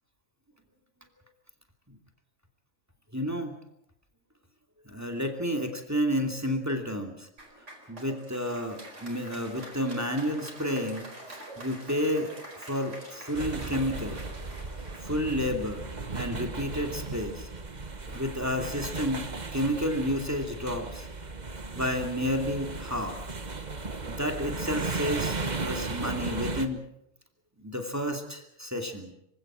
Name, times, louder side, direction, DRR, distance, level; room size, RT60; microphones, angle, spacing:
voice 1, 3.1-3.5 4.9-7.3 7.9-11.1 11.6-12.3 12.6-14.2 15.0-15.8 16.1-17.5 18.1-19.2 19.5-21.1 21.7-23.2 24.1-26.8 27.6-29.1, equal, 15° right, 4 dB, 2.6 m, -30 dB
Applause, 7.4-16.7, right 1 dB, 65° right, 5.1 m, -47 dB
sound 1, 13.3-26.7, right 3 dB, 35° right, 1.5 m, -36 dB
25.5 x 17.0 x 7.5 m, 0.77 s
omnidirectional pair, 1.3 m